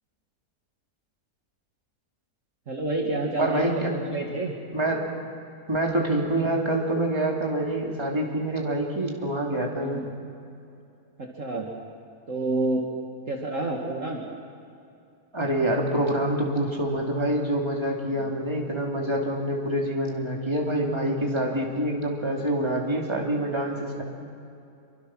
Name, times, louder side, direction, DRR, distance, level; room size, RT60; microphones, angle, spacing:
voice 1, 2.7-4.5 9.8-10.1 11.2-11.7 12.3-12.8 13.3-14.2 18.1-18.2, right 2 dB, 50° right, 0 dB, 2.2 m, -29 dB
voice 2, 3.4-3.9 4.7-5.1 5.7-10.0 15.3-24.0, right 1 dB, 15° right, 0 dB, 2.9 m, -26 dB
27.0 x 24.0 x 6.2 m, 2.6 s
omnidirectional pair, 1.8 m